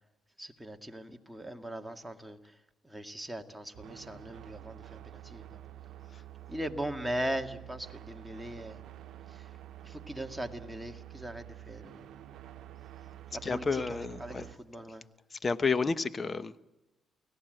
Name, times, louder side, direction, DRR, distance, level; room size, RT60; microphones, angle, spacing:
voice 1, 0.4-2.4 2.8-5.6 6.5-8.8 9.3-9.5 9.8-12.1 13.3-15.0, right 1 dB, 5° right, 2.0 m, -39 dB
sound 1, 3.7-14.6, right 12 dB, 75° right, 1.0 m, -48 dB
voice 2, 13.4-14.4 15.3-16.6, left 4 dB, 30° left, 1.1 m, -31 dB
29.5 x 18.0 x 7.8 m
cardioid pair, 90°, 0 cm